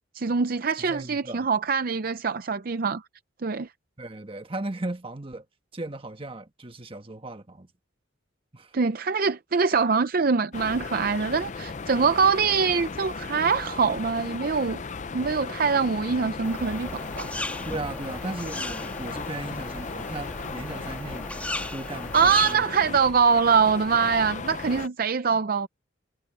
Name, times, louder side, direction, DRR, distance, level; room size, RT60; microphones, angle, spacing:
voice 1, 0.1-3.0 3.4-3.7 8.7-14.8 15.1-17.3 22.1-25.7, right 5 dB, 50° right, 0.5 m, -23 dB
voice 2, 0.8-1.5 4.0-5.4 5.7-7.7 8.5-8.7 17.6-21.4 21.7-23.0, right 2 dB, 30° right, 1.4 m, -37 dB
sound 1, 10.5-24.9, left 4 dB, 40° left, 0.6 m, -36 dB
sound 2, 16.4-22.5, left 1 dB, 10° left, 1.5 m, -37 dB
head